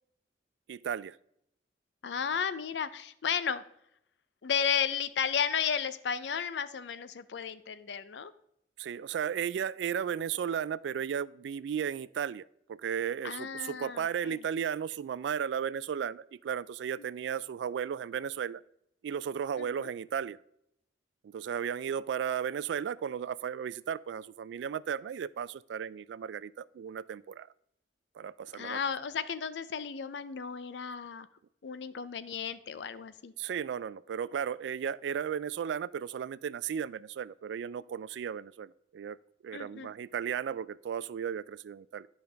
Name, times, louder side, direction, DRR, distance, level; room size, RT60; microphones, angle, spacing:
voice 1, 0.7-1.2 8.8-18.6 19.0-20.4 21.2-27.5 28.2-28.8 33.4-39.2 39.4-42.1, right 8 dB, 85° right, 19 dB, 0.3 m, -35 dB
voice 2, 2.0-3.6 4.4-8.3 13.2-14.4 17.0-17.1 19.6-19.9 28.5-31.3 31.6-33.3 39.5-39.9, left 7 dB, 80° left, 14 dB, 0.5 m, -33 dB
10.5 x 5.3 x 3.4 m, 0.75 s
head